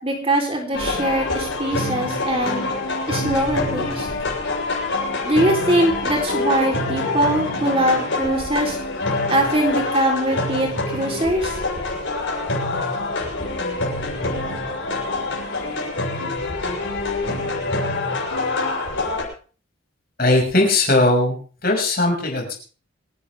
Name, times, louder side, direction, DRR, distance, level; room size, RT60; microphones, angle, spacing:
voice 1, 0.0-2.7 3.1-4.1 5.2-8.8 9.3-11.6, right 1 dB, 25° right, 1 dB, 3.6 m, -22 dB
sound 1, 0.7-19.2, left 2 dB, 65° left, 7.4 m, -25 dB
voice 2, 20.2-21.4 21.6-22.5, left 2 dB, 45° left, 0 dB, 6.1 m, -19 dB
27.5 x 11.5 x 3.5 m, 0.39 s
head